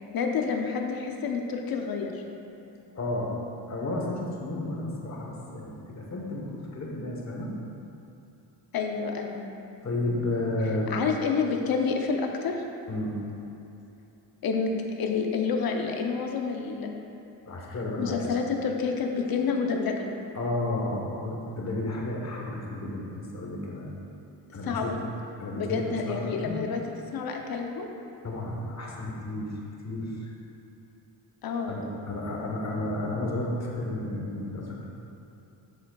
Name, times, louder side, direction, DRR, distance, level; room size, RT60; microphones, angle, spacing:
voice 1, 0.1-2.2 8.7-9.4 10.9-12.6 14.4-16.9 18.0-20.0 24.6-25.0 25.6-26.8 27.1-27.9 31.4-31.7, left 5 dB, 55° left, 3 dB, 0.7 m, -28 dB
voice 2, 2.9-3.3 3.7-7.5 9.8-11.0 12.9-13.2 17.5-18.4 20.3-23.9 24.5-25.0 25.4-26.6 28.2-29.5 29.8-30.3 31.7-34.9, left 1 dB, 35° left, -2 dB, 1.1 m, -32 dB
7.2 x 7.0 x 2.3 m, 2.8 s
cardioid pair, 100°, 44 cm